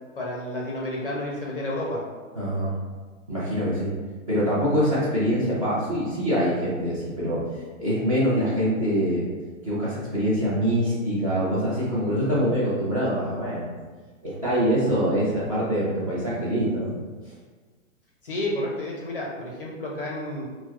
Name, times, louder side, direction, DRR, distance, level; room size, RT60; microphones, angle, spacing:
voice 1, 0.2-2.0 18.2-20.4, left 1 dB, 45° left, -3 dB, 0.5 m, -30 dB
voice 2, 2.3-2.7 3.3-3.9 4.3-7.4 7.8-9.2 9.6-13.7 14.2-16.9 17.2-17.3, equal, 25° right, -9 dB, 0.6 m, -24 dB
4.3 x 2.0 x 2.3 m, 1.4 s
hypercardioid pair, 180°, 41 cm